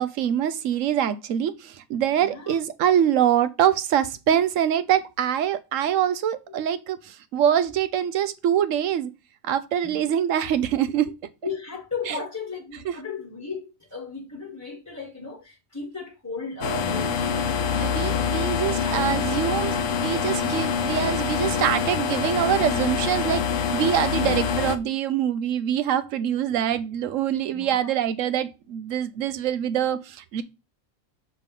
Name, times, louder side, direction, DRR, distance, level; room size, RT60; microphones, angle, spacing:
voice 1, 0.0-9.1 9.4-11.1 12.1-12.2 17.8-30.4, right 10 dB, 70° right, 1.0 m, -24 dB
voice 2, 2.2-2.6 9.8-10.1 11.4-18.3 18.8-19.1 24.1-24.5 27.5-27.9, left 4 dB, 15° left, 1.1 m, -36 dB
sound 1, 16.6-24.8, left 6 dB, 65° left, 1.1 m, -25 dB
6.8 x 3.6 x 5.3 m
omnidirectional pair, 1.4 m